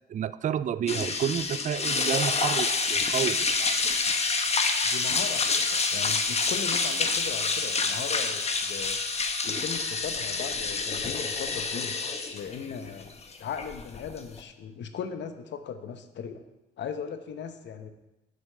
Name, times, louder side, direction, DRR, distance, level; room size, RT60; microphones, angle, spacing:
voice 1, 0.1-3.8, right 9 dB, 40° right, 15 dB, 0.4 m, -30 dB
sound 1, 0.9-14.4, left 4 dB, 35° left, 0.9 m, -27 dB
voice 2, 4.8-9.0 9.5-12.0 12.3-13.1 13.4-16.4 16.8-17.9, left 7 dB, 65° left, 9 dB, 0.9 m, -38 dB
7.8 x 5.3 x 6.5 m, 0.97 s
cardioid pair, 90°, 20 cm